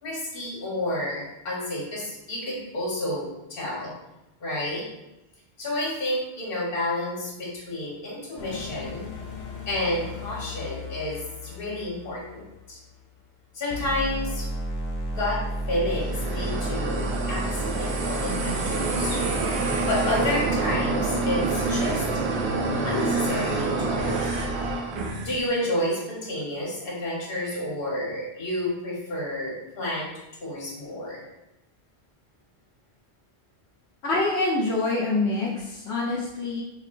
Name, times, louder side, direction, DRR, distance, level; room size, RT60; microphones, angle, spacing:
voice 1, 0.0-3.9 4.4-4.8 5.6-9.1 9.7-12.8 13.5-14.5 15.1-15.4 15.7-19.2 19.8-22.0 22.8-24.3 25.2-30.1 30.4-31.2, left 1 dB, 60° left, -4 dB, 1.3 m, -30 dB
sound 1, 8.4-13.3 13.7-24.7, equal, 45° left, 0.5 m, -34 dB
sound 2, 15.8-25.5, right 3 dB, 80° right, 0.9 m, -27 dB
voice 2, 34.0-36.6, left 2 dB, 85° left, -4 dB, 0.9 m, -25 dB
4.3 x 2.7 x 2.6 m, 0.95 s
omnidirectional pair, 1.1 m